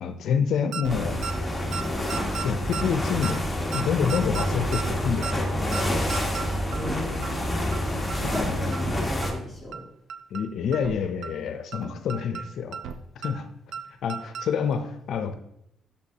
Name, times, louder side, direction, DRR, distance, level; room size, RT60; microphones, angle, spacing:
voice 1, 0.0-1.2 2.4-3.4 3.7-5.5 8.2-8.7 10.3-12.8 13.2-13.5 14.0-15.3, left 6 dB, 70° left, 8 dB, 0.5 m, -27 dB
sound 1, 0.7-0.9 1.2-1.3 1.7-1.8 2.1-2.4 2.7-2.9 3.2-3.3 3.7-3.8 4.1-4.4 4.7-4.9 5.2-5.3 5.7-5.8 6.1-6.4 6.7-6.9 7.2-7.3 7.7-7.8 8.1-8.4 8.7-8.9 9.2-9.3 9.7-9.8 10.1-10.4 10.7-10.9 11.2-11.3 11.7-11.8 12.1-12.4 12.7-12.9 13.2-13.3 13.7-13.8 14.1-14.4 14.7-14.8, right 7 dB, 85° right, 0.4 m, -34 dB
sound 2, 0.9-9.3, left 1 dB, 5° left, 1.1 m, -28 dB
voice 2, 6.7-9.8, left 1 dB, 15° right, -3 dB, 2.2 m, -36 dB
6.5 x 5.2 x 2.8 m, 0.77 s
cardioid pair, 90°, 0 cm